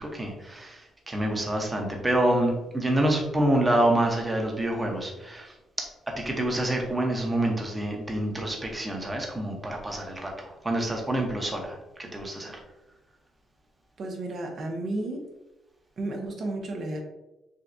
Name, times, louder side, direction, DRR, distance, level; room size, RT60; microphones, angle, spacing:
voice 1, 0.0-12.6, right 1 dB, 20° right, 1 dB, 1.0 m, -27 dB
voice 2, 14.0-15.3 16.0-17.0, right 2 dB, 55° right, 2 dB, 1.0 m, -32 dB
6.4 x 2.3 x 2.7 m, 0.98 s
cardioid pair, 90°, 0 cm